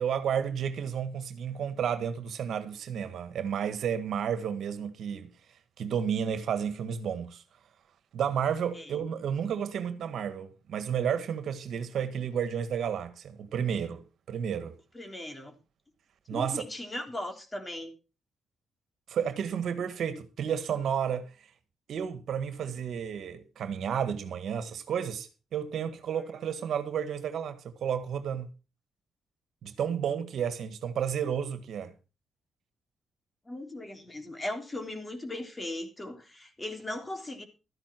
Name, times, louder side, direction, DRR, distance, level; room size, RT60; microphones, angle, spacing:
voice 1, 0.0-5.3 5.8-7.4 8.1-14.8 16.3-16.6 19.1-21.3 21.9-28.5 29.6-31.9, right 8 dB, 75° right, 1.7 m, -32 dB
voice 2, 14.9-15.6 16.3-17.9 26.1-26.2 33.5-37.4, left 1 dB, 25° left, 3.6 m, -38 dB
13.5 x 10.5 x 4.6 m
cardioid pair, 70°, 0 cm